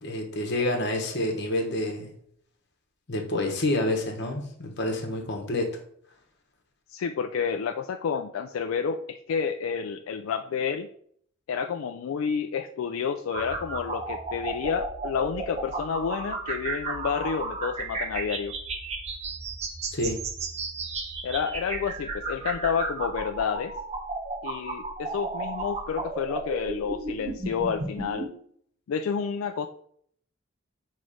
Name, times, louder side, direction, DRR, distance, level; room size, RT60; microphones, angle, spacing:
voice 1, 0.0-2.1 3.1-5.7 19.9-20.2, left 1 dB, 55° left, 2 dB, 1.2 m, -28 dB
voice 2, 6.9-10.9 11.5-18.5 21.2-23.7 24.4-28.3 28.9-29.7, left 6 dB, 80° left, 7 dB, 0.3 m, -30 dB
sound 1, 13.3-28.3, right 3 dB, 30° right, 0.8 m, -34 dB
6.1 x 3.2 x 4.9 m, 0.65 s
head